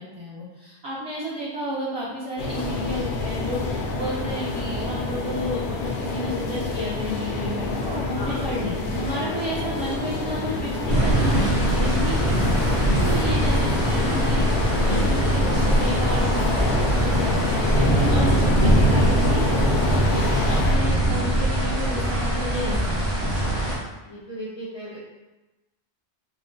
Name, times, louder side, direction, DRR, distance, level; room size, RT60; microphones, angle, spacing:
voice 1, 0.0-10.5 10.8-20.2 20.5-23.0, equal, 40° right, -8 dB, 0.6 m, -32 dB
sound 1, 2.4-20.7, left 3 dB, 75° left, 0.8 m, -27 dB
voice 2, 8.1-8.6 12.8-13.2 23.3-23.7 24.0-25.0, equal, 35° left, -6 dB, 0.5 m, -37 dB
sound 2, 10.9-23.8, right 1 dB, 70° right, 1.4 m, -22 dB
4.2 x 2.1 x 2.6 m, 1.1 s
omnidirectional pair, 1.1 m